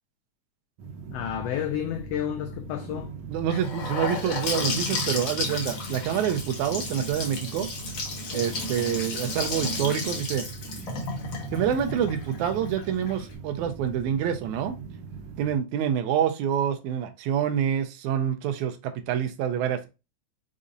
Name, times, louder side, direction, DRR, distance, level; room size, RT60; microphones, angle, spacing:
sound 1, 0.8-15.5, right 5 dB, 70° right, 1.9 m, -41 dB
voice 1, 1.1-3.2, left 10 dB, 85° left, 1.4 m, -31 dB
voice 2, 3.3-7.7 8.3-10.5 11.5-14.8 15.4-19.9, right 9 dB, 85° right, 2.0 m, -27 dB
Gurgling / Sink (filling or washing) / Bathtub (filling or washing), 3.5-13.3, left 3 dB, 50° left, 1.6 m, -33 dB
5.3 x 3.8 x 2.5 m
omnidirectional pair, 3.4 m